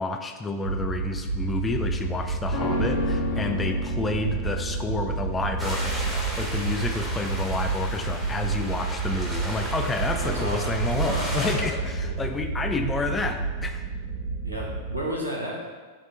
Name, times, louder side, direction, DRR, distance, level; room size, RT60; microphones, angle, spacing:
voice 1, 0.0-13.9, left 3 dB, 15° left, 6 dB, 0.3 m, -30 dB
sound 1, 0.6-15.0, right 4 dB, 80° left, 1.3 m, -30 dB
sound 2, 2.5-11.9 12.2-12.3, left 2 dB, 50° left, 0.8 m, -34 dB
sound 3, 5.6-11.5, equal, ahead, 0.9 m, -35 dB
voice 2, 10.2-10.7 11.1-11.7 12.0-12.2 14.4-15.6, equal, 85° right, -3 dB, 0.7 m, -32 dB
3.7 x 2.4 x 4.1 m, 1.4 s
figure-of-eight pair, 90°, 0 cm